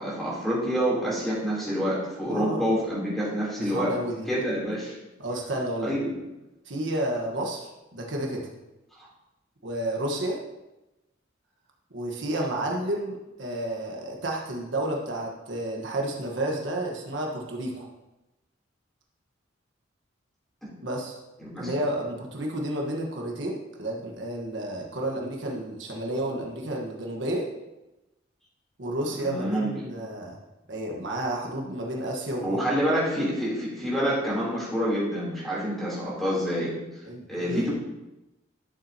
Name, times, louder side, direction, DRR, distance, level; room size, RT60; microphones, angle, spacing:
voice 1, 0.0-3.9 4.3-5.0 5.8-6.1 20.6-20.7 21.4-21.7 29.1-29.7 32.4-36.7 37.3-37.7, equal, ahead, -7 dB, 3.4 m, -27 dB
voice 2, 2.3-2.7 3.6-4.3 5.2-5.9 6.7-8.5 9.6-10.4 11.9-17.9 20.8-21.2 21.6-27.5 28.8-30.4 30.7-32.6 37.0-37.7, right 1 dB, 75° right, -1 dB, 1.4 m, -31 dB
12.5 x 7.1 x 2.9 m, 1.0 s
head